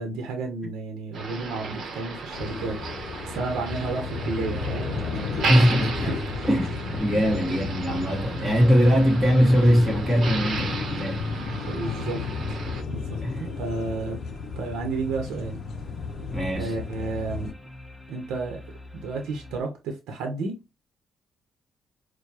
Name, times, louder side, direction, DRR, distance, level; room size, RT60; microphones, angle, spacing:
voice 1, 0.0-6.2 11.6-14.2 14.6-15.6 16.6-17.5 18.1-18.6 18.9-20.6, right 3 dB, 90° right, 0.8 m, -32 dB
Motor vehicle (road), 1.1-12.8, right 4 dB, 60° right, 0.9 m, -34 dB
sound 1, 2.3-17.5, left 4 dB, 75° left, 0.5 m, -33 dB
voice 2, 5.5-6.1 6.5-11.2 13.2-13.5 16.3-16.7, equal, 15° right, 1.4 m, -21 dB
sound 2, 8.6-19.6, left 2 dB, 5° left, 0.6 m, -45 dB
4.6 x 2.2 x 2.8 m
cardioid pair, 90°, 0 cm